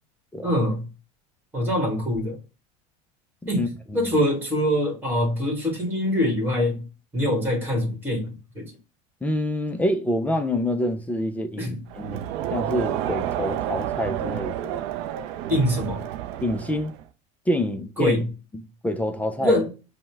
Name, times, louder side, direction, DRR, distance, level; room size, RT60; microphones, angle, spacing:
voice 1, 0.4-0.8 1.5-2.4 3.5-6.8 7.1-8.7 11.6-11.8 15.5-16.0 18.0-18.3 19.4-19.7, left 1 dB, 10° right, 1.4 m, -24 dB
voice 2, 3.6-4.1 9.2-14.8 16.4-16.9 17.5-18.2 18.5-19.6, left 1 dB, 10° left, 0.4 m, -27 dB
Crowd, 11.9-17.1, right 11 dB, 65° right, 0.4 m, -30 dB
5.3 x 2.1 x 3.3 m
supercardioid pair, 135°, 17 cm